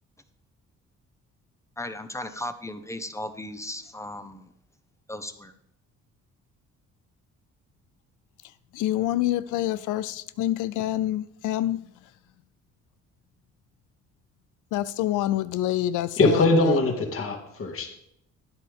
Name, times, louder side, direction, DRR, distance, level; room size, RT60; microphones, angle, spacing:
voice 1, 1.8-4.5 5.1-5.5, left 1 dB, 10° left, 0.9 m, -36 dB
voice 2, 8.7-11.8 14.7-16.8, left 14 dB, 85° left, 0.5 m, -27 dB
voice 3, 16.2-17.9, left 2 dB, 45° left, 2.0 m, -22 dB
12.5 x 9.2 x 3.5 m
cardioid pair, 90°, 30 cm